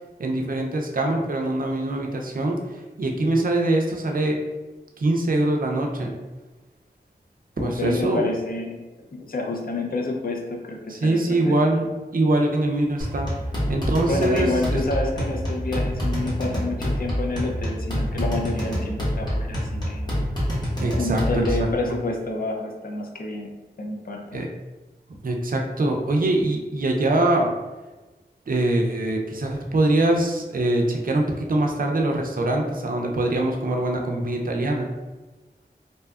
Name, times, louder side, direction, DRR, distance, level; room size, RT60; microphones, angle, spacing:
voice 1, 0.2-2.6 3.0-4.4 5.0-6.2 7.6-8.2 10.9-11.9 12.1-13.3 13.7-14.8 20.8-21.2 21.6-22.0 24.3-24.5 25.2-27.5 28.5-34.9, right 2 dB, 55° right, 1 dB, 0.4 m, -23 dB
voice 2, 7.6-8.9 9.1-11.6 14.1-20.1 20.9-24.4, left 2 dB, 55° left, 1 dB, 0.5 m, -29 dB
sound 1, 13.0-21.7, equal, 25° left, 1.0 m, -27 dB
2.7 x 2.3 x 2.3 m, 1.2 s
wide cardioid pair, 60°, 17 cm